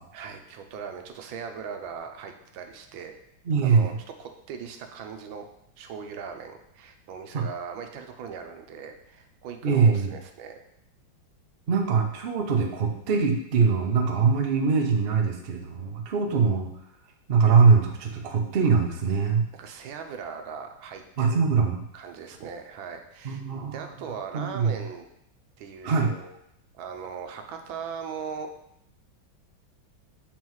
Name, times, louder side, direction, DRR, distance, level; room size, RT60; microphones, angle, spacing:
voice 1, 0.1-3.1 3.6-3.9 4.2-5.4 5.8-10.6 19.5-21.4 21.9-23.4 23.7-25.1 25.6-26.3 26.7-28.5, right 6 dB, 85° right, 5 dB, 1.5 m, -39 dB
voice 2, 3.5-4.0 7.3-7.5 9.6-10.1 11.7-16.7 17.3-19.4 21.2-21.8 23.2-23.9 24.3-24.7 25.8-26.1, right 5 dB, 60° right, 1 dB, 0.5 m, -22 dB
7.2 x 4.5 x 3.1 m, 0.78 s
omnidirectional pair, 2.2 m